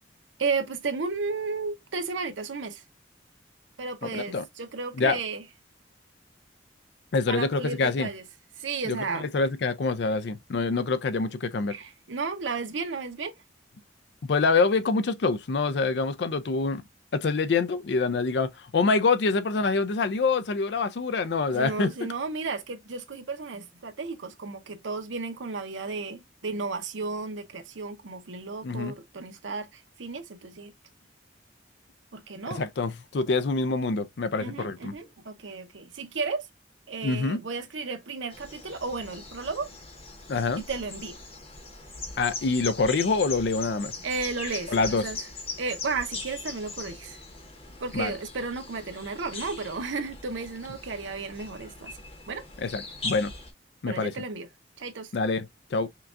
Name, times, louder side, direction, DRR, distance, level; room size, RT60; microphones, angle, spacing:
voice 1, 0.4-2.8 3.8-5.4 7.3-8.2 8.6-9.3 11.7-13.3 21.5-30.7 32.1-32.6 34.4-36.5 36.9-39.7 40.6-41.2 44.0-45.2 45.6-47.2 47.8-51.9 52.3-52.4 53.9-54.5 54.8-55.1, right 4 dB, 90° right, 0.8 m, -33 dB
voice 2, 4.0-4.5 5.0-5.2 7.1-8.1 8.8-11.8 14.2-16.8 17.1-21.9 28.6-28.9 32.5-34.9 37.0-37.4 40.3-40.6 42.2-43.9 44.7-45.0 47.9-48.1 52.6-53.3 53.8-54.1 55.1-55.9, left 4 dB, 65° left, 0.4 m, -26 dB
sound 1, 38.3-53.5, left 3 dB, 30° left, 0.9 m, -40 dB
5.7 x 2.3 x 2.5 m
head